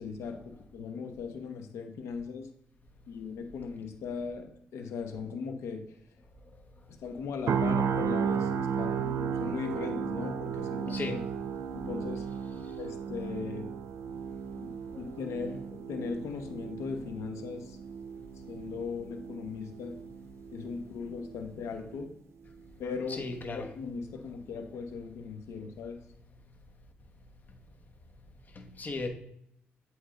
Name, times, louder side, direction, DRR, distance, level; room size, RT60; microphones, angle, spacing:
voice 1, 0.0-2.5 3.1-6.0 7.0-11.2 11.7-12.3 12.8-13.7 14.6-17.8 18.5-20.0 20.5-22.1 22.8-23.3 23.5-26.0, left 5 dB, 85° left, 0.9 m, -38 dB
sound 1, 7.5-21.5 21.8-22.0, right 7 dB, 70° right, 0.4 m, -34 dB
voice 2, 10.9-11.2 23.1-23.7 28.6-29.1, left 3 dB, 40° left, 1.3 m, -36 dB
8.2 x 3.5 x 3.7 m
cardioid pair, 80°, 5 cm